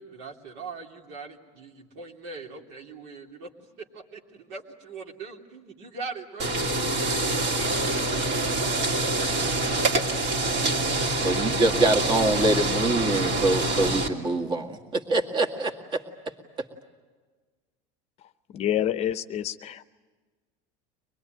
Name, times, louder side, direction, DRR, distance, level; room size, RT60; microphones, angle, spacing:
voice 1, 0.0-3.5 3.9-8.2, right 4 dB, 70° right, 1 dB, 3.2 m, -41 dB
sound 1, 6.4-14.1, right 2 dB, 45° right, 2.8 m, -26 dB
voice 2, 10.8-16.0, right 2 dB, 30° right, 4 dB, 2.1 m, -25 dB
voice 3, 18.5-19.8, left 11 dB, 40° left, 12 dB, 0.7 m, -27 dB
24.5 x 21.0 x 9.2 m, 1.4 s
supercardioid pair, 135°, 17 cm